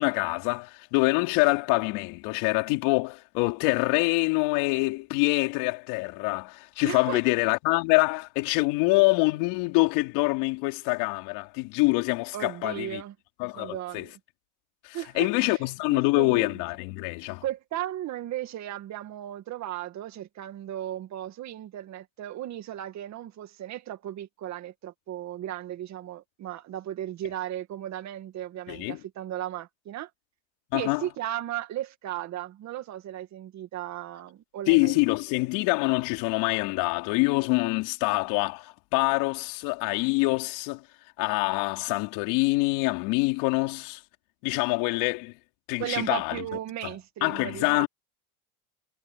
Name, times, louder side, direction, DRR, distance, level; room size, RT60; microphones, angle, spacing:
voice 1, 0.0-13.0 13.4-14.1 14.8-17.4 28.7-29.0 30.7-31.1 34.7-40.8 41.2-44.0 44.4-45.3 45.7-46.4 47.2-47.9, left 25 dB, 65° left, 4.0 m, -25 dB
voice 2, 6.8-7.2 12.3-13.1 13.5-14.1 14.9-15.6 15.9-16.5 17.4-30.1 30.7-35.0 45.8-47.9, right 12 dB, 40° right, 2.2 m, -36 dB
supercardioid pair, 140°, 44 cm